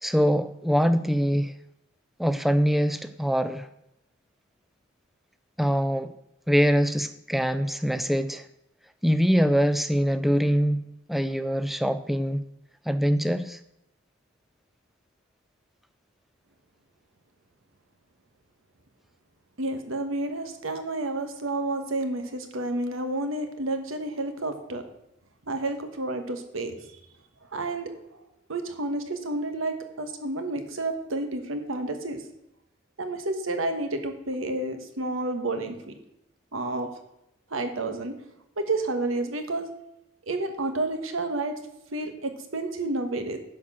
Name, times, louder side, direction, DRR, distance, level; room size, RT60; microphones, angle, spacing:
voice 1, 0.0-1.5 2.2-3.7 5.6-6.1 6.5-8.5 9.0-12.4 12.9-13.6, equal, ahead, 11 dB, 0.4 m, -23 dB
voice 2, 19.6-24.8 25.5-26.9 27.5-28.0 28.5-32.2 33.0-35.9 36.5-36.9 37.5-38.1 38.6-39.7 40.3-41.5 41.9-43.4, right 2 dB, 90° right, 7 dB, 1.3 m, -30 dB
11.0 x 4.5 x 7.3 m, 0.84 s
head